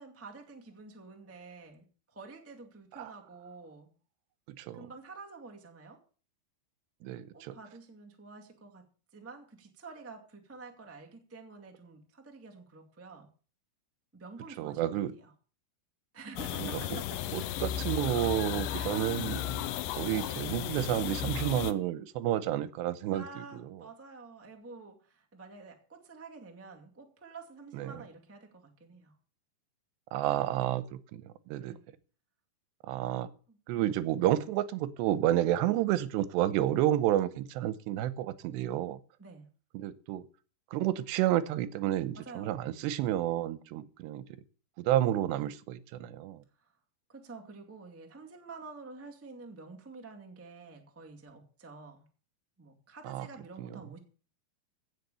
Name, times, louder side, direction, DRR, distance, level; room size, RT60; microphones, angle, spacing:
voice 1, 0.0-3.9 4.8-6.0 7.0-13.3 14.1-15.3 16.1-17.5 18.7-19.1 23.1-29.2 31.6-31.9 33.5-33.8 39.2-39.5 42.1-42.7 46.6-46.7 47.1-52.1 52.6-54.0, right 4 dB, 15° right, 2 dB, 0.5 m, -49 dB
voice 2, 7.0-7.6 14.6-15.1 16.6-17.0 17.3-19.4 20.0-23.2 27.7-28.0 30.1-31.8 32.9-33.3 33.7-39.0 39.7-40.2 40.7-44.2 44.8-46.4 53.0-53.3 53.6-53.7, right 13 dB, 85° right, 16 dB, 3.0 m, -30 dB
sound 1, 16.4-21.7, left 11 dB, 85° left, 2.0 m, -34 dB
16.5 x 6.7 x 6.9 m, 0.39 s
omnidirectional pair, 4.9 m